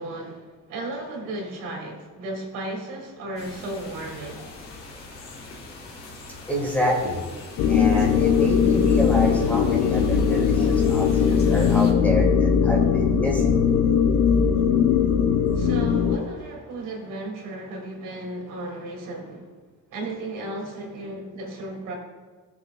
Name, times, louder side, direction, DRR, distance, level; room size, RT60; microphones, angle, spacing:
voice 1, 0.0-4.5 15.5-19.5 19.9-22.0, right 2 dB, 75° right, 0 dB, 2.8 m, -34 dB
sound 1, 3.4-11.9, left 2 dB, 45° left, 2.4 m, -42 dB
voice 2, 6.5-7.2 7.7-13.6, equal, 5° left, -2 dB, 1.8 m, -27 dB
sound 2, 7.6-16.2, left 7 dB, 75° left, 0.8 m, -20 dB
17.5 x 7.1 x 2.4 m, 1.4 s
cardioid pair, 170°, 32 cm